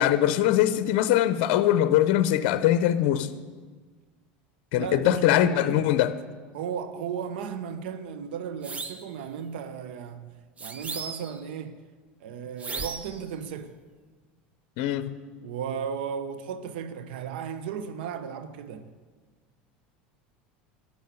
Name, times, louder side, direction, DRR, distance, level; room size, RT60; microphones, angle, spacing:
voice 1, 0.0-3.3 4.7-6.1 14.8-15.2, left 12 dB, 65° left, 0.7 m, -22 dB
voice 2, 4.7-5.8 6.5-10.3 10.6-11.8 12.2-13.7 15.4-18.9, right 7 dB, 80° right, 0.9 m, -35 dB
sound 1, 8.6-9.1 10.6-11.4 12.6-13.2, right 4 dB, 25° right, 1.0 m, -36 dB
12.5 x 7.1 x 9.6 m
supercardioid pair, 105°, 5 cm